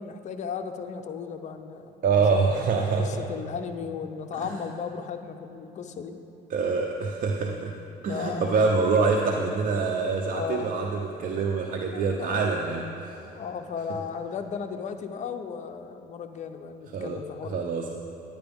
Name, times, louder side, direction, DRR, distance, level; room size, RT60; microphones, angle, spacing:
voice 1, 0.0-1.9 2.3-2.4 3.0-6.2 8.1-8.7 10.3-10.8 11.9-12.4 13.3-17.6, left 6 dB, 45° left, 7 dB, 0.6 m, -35 dB
voice 2, 2.0-3.2 4.3-4.5 6.5-7.7 8.0-13.2 16.9-17.2 17.5-17.9, right 4 dB, 50° right, 1 dB, 0.6 m, -25 dB
10.0 x 8.9 x 3.5 m, 2.8 s
cardioid pair, 110°, 17 cm